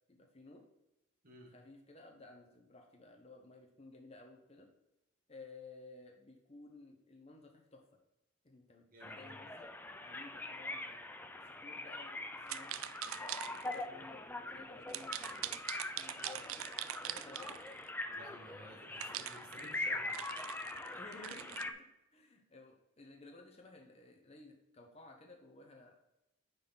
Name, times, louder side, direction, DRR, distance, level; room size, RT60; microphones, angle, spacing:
voice 1, 0.1-0.7 1.5-4.7 5.3-7.8 8.4-8.9 9.2-9.7 10.0-11.0 11.4-12.7 13.2-15.2 15.9-17.6 21.0-25.9, left 3 dB, 30° left, 1 dB, 1.1 m, -55 dB
voice 2, 8.9-9.4 18.1-20.1, right 1 dB, 45° right, 0 dB, 1.7 m, -55 dB
sound 1, 9.0-21.7, left 2 dB, 10° left, 0.4 m, -43 dB
sound 2, 12.5-13.8 14.9-17.9 19.0-21.6, right 13 dB, 85° right, 0.4 m, -43 dB
9.5 x 4.2 x 4.0 m, 0.91 s
head